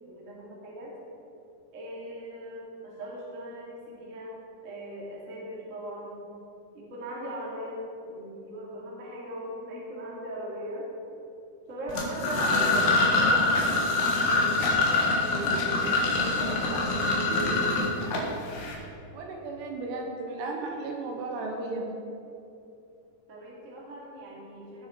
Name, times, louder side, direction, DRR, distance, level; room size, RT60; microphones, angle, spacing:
voice 1, 0.0-0.9 1.7-6.3 6.7-10.9 11.7-15.4 16.2-16.6 17.3-17.7 23.3-24.9, right 1 dB, 30° right, -5 dB, 1.4 m, -39 dB
sound 1, 11.9-18.7, left 2 dB, 85° left, 4.0 m, -25 dB
voice 2, 16.5-17.1 18.7-18.9 19.1-21.9, right 3 dB, 75° right, 1 dB, 3.1 m, -35 dB
18.5 x 6.3 x 4.4 m, 2.7 s
omnidirectional pair, 5.2 m